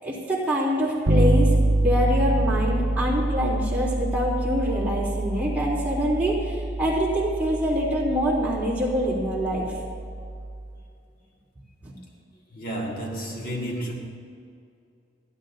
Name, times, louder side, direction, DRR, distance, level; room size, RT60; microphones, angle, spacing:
voice 1, 0.0-1.5 1.8-9.7 11.8-11.9, equal, 10° right, -6 dB, 3.1 m, -25 dB
Bass guitar, 1.1-10.7, right 2 dB, 80° right, 0.9 m, -26 dB
voice 2, 12.5-13.9, equal, 45° left, -2 dB, 1.9 m, -31 dB
30.0 x 11.0 x 2.7 m, 2.4 s
head